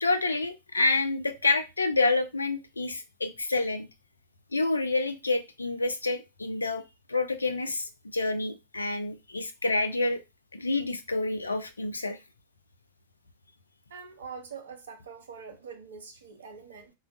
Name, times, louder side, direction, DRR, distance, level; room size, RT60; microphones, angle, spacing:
voice 1, 0.0-3.9 4.5-6.8 7.1-10.2 10.5-12.2, left 3 dB, 80° left, 0.4 m, -28 dB
voice 2, 13.9-16.9, right 6 dB, 65° right, 0.7 m, -44 dB
3.3 x 2.1 x 2.5 m
figure-of-eight pair, 90°, 0 cm